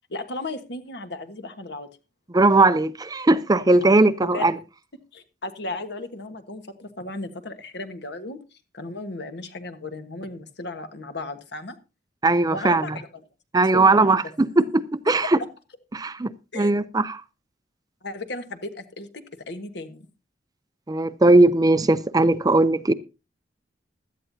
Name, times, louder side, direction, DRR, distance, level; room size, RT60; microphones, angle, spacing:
voice 1, 0.1-1.9 3.7-3.9 4.2-4.4 5.1-11.8 12.5-13.1 13.6-14.3 15.1-15.3 16.5-16.8 18.0-20.1, left 2 dB, 65° left, 1.4 m, -35 dB
voice 2, 2.3-4.6 12.2-13.0 13.5-14.6 15.1-15.4 15.9-17.2 20.9-22.9, right 2 dB, 20° right, 0.5 m, -19 dB
16.5 x 12.5 x 2.7 m
head